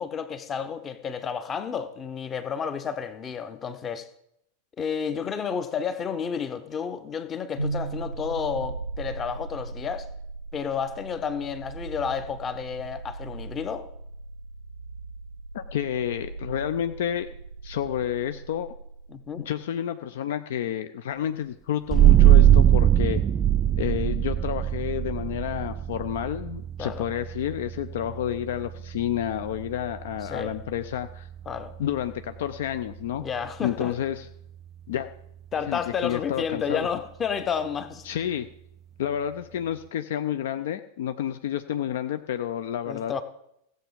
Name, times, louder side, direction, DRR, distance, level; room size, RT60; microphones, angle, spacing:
voice 1, 0.0-4.1 4.8-10.1 10.5-13.9 19.1-19.5 26.8-27.0 30.3-30.5 31.5-31.7 33.2-33.9 35.5-38.0 42.9-43.2, left 7 dB, 25° left, 1.1 m, -31 dB
sound 1, 7.6-19.6, right 3 dB, 85° right, 0.6 m, -38 dB
voice 2, 15.5-17.3 17.6-18.7 19.3-23.2 23.8-31.3 31.8-33.2 33.6-34.2 34.9-35.1 35.7-36.9 38.0-38.5 39.0-43.1, left 10 dB, 55° left, 0.6 m, -30 dB
sound 2, 21.9-33.2, right 12 dB, 25° right, 0.4 m, -22 dB
16.0 x 7.7 x 5.3 m
figure-of-eight pair, 90°, 0 cm